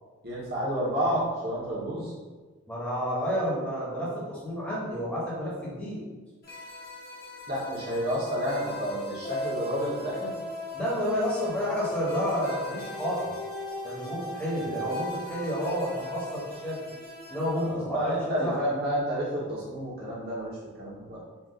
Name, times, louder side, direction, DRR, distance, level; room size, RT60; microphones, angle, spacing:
voice 1, 0.2-2.1 7.5-10.4 17.6-20.5 20.8-21.2, equal, 45° right, -6 dB, 1.4 m, -30 dB
voice 2, 2.7-6.0 10.7-13.4 13.8-16.8 17.3-18.6, equal, 5° left, -9 dB, 1.4 m, -30 dB
sound 1, 6.4-17.7, left 1 dB, 45° left, 1.2 m, -38 dB
4.4 x 2.8 x 3.9 m, 1.4 s
head